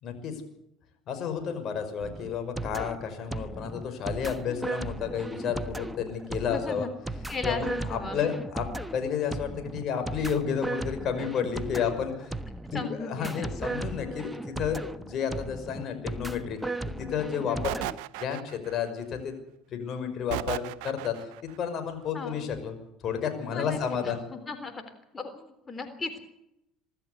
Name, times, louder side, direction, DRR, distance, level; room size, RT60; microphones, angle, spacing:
voice 1, 0.0-0.4 1.1-6.9 7.4-12.3 12.7-16.6 16.9-19.3 19.7-21.2 21.6-22.8 23.0-24.2, left 7 dB, 50° left, 7 dB, 6.0 m, -31 dB
sound 1, 2.0-18.0, right 2 dB, 10° right, 1.3 m, -36 dB
voice 2, 6.5-6.9 7.3-8.2 12.7-13.5 17.5-17.7 22.1-22.4 23.5-23.8 24.3-24.8 25.1-26.3, left 3 dB, 25° left, 8 dB, 3.6 m, -36 dB
sound 2, 17.6-18.9 20.3-21.4, right 17 dB, 70° right, 0.7 m, -35 dB
24.5 x 13.5 x 8.3 m, 0.83 s
hypercardioid pair, 70°, 0 cm